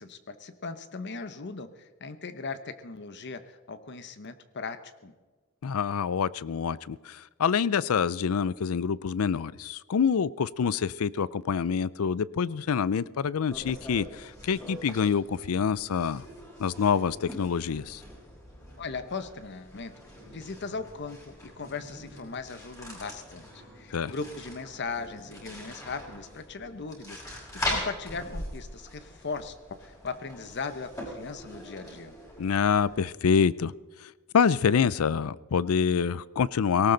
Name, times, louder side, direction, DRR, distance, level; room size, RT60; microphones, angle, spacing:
voice 1, 0.0-5.1 18.8-19.9 20.3-32.2, left 4 dB, 55° left, 11 dB, 0.9 m, -38 dB
voice 2, 5.6-16.2 16.6-18.0 23.9-24.1 32.4-33.7 34.0-36.9, left 6 dB, 80° left, 20 dB, 0.5 m, -26 dB
sound 1, 13.5-33.0, left 1 dB, 15° left, 5.5 m, -41 dB
18.5 x 18.0 x 3.9 m, 1.3 s
head